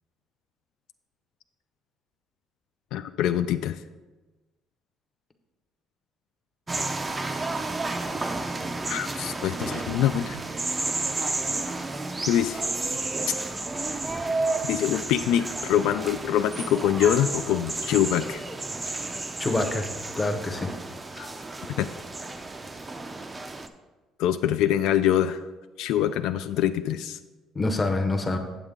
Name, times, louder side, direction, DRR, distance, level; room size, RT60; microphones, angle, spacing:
voice 1, 2.9-3.8 8.8-10.4 12.2-12.7 14.7-18.4 21.2-21.3 21.8-21.9 24.2-25.4 25.8-27.2, left 10 dB, 75° left, 10 dB, 0.3 m, -24 dB
sound 1, 6.7-23.7, right 2 dB, 15° right, 0.4 m, -32 dB
voice 2, 19.4-19.9 20.1-20.7 27.5-28.4, left 2 dB, 15° left, 4 dB, 0.7 m, -26 dB
8.1 x 8.0 x 3.7 m, 1.2 s
cardioid pair, 170°, 0 cm